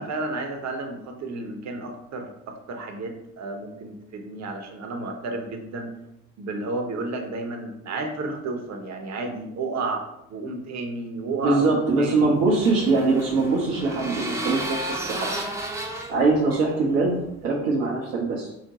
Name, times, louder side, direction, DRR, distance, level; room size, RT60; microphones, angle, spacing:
voice 1, 0.0-5.9 6.4-10.0 10.3-11.7 12.0-12.4, right 3 dB, 45° right, 3 dB, 0.8 m, -32 dB
voice 2, 11.4-15.3 16.1-18.5, right 3 dB, 80° right, -4 dB, 0.8 m, -22 dB
sound 1, 11.9-17.5, right 1 dB, 10° right, 0.6 m, -33 dB
5.0 x 2.1 x 2.9 m, 0.84 s
hypercardioid pair, 55°, 37 cm